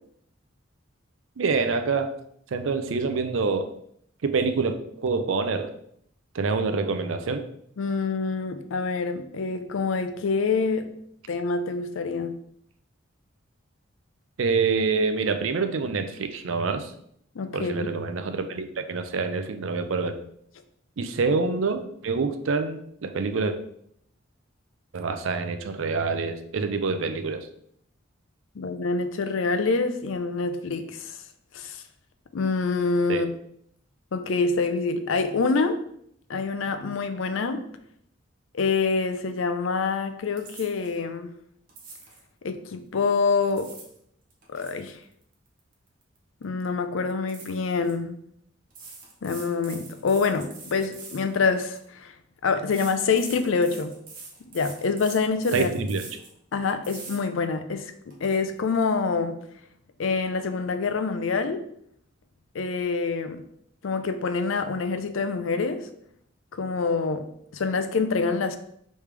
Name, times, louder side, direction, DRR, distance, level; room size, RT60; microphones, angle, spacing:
voice 1, 1.4-2.2 2.5-3.7 4.2-5.7 6.3-7.4 14.4-16.9 17.5-20.1 21.0-23.6 24.9-27.5 33.1-33.2 55.5-56.0, right 4 dB, 70° right, 8 dB, 0.5 m, -26 dB
voice 2, 7.8-10.9 11.3-12.3 17.4-18.0 28.5-31.2 31.5-31.8 32.3-33.3 34.1-35.8 36.3-37.6 38.5-41.3 42.4-43.7 44.5-45.0 46.4-48.2 49.2-52.1 52.4-53.9 54.5-55.7 56.5-59.4 60.0-61.6 62.5-63.4 63.8-65.9 66.5-67.3 67.5-68.6, left 4 dB, 70° left, 9 dB, 0.5 m, -26 dB
sound 1, 40.4-41.0 41.7-42.2 43.3-44.0 44.3-46.2 46.4-46.7 47.3-47.9 48.7-51.9 52.7-56.3 56.8-57.2 57.7-57.8 58.1-58.4, right 4 dB, 45° right, 1.2 m, -44 dB
5.0 x 3.2 x 3.3 m, 0.68 s
head